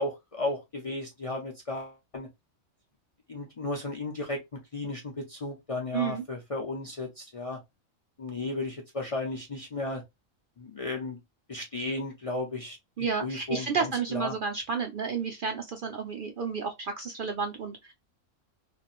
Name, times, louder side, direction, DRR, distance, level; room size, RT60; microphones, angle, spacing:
voice 1, 0.0-2.3 3.3-7.6 8.2-10.0 10.6-11.2 11.5-12.8 13.2-14.3, left 2 dB, 40° left, 0.5 m, -34 dB
voice 2, 5.9-6.2 13.0-17.9, right 5 dB, 60° right, 0.6 m, -31 dB
2.8 x 2.5 x 2.4 m
omnidirectional pair, 1.3 m